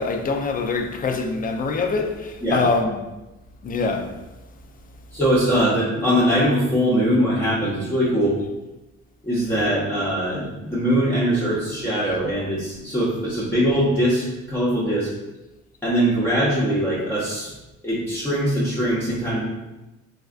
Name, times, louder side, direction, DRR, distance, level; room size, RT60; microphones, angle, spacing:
voice 1, 0.0-3.0 3.6-4.1, left 4 dB, 30° left, 0.4 m, -24 dB
voice 2, 5.1-8.4 9.2-15.1 15.8-17.5 17.8-19.4, equal, 10° left, 0.8 m, -21 dB
4.1 x 2.4 x 2.4 m
cardioid pair, 90°, 30 cm